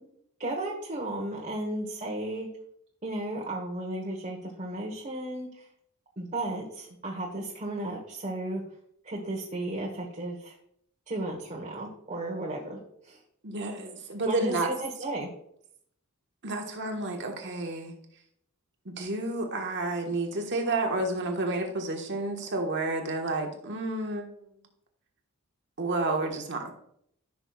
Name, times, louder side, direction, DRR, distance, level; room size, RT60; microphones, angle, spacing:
voice 1, 0.4-2.5 3.0-5.5 6.2-8.6 9.0-10.5 11.1-12.8 13.0-13.2 14.3-15.3, right 1 dB, 35° right, -3 dB, 1.2 m, -34 dB
voice 2, 13.4-14.7 16.4-17.9 18.8-24.3 25.8-26.7, right 2 dB, 55° right, 2 dB, 1.4 m, -30 dB
14.5 x 6.0 x 2.4 m, 0.70 s
head